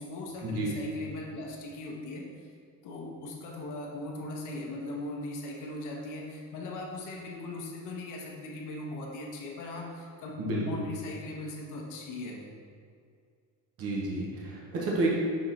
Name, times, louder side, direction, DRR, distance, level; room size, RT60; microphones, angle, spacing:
voice 1, 0.0-2.5 2.8-10.3 10.6-12.5, left 2 dB, 65° left, -1 dB, 1.1 m, -39 dB
voice 2, 10.4-10.8 13.8-15.1, right 2 dB, 45° right, -4 dB, 1.1 m, -30 dB
6.3 x 4.4 x 4.1 m, 2.2 s
cardioid pair, 175°, 34 cm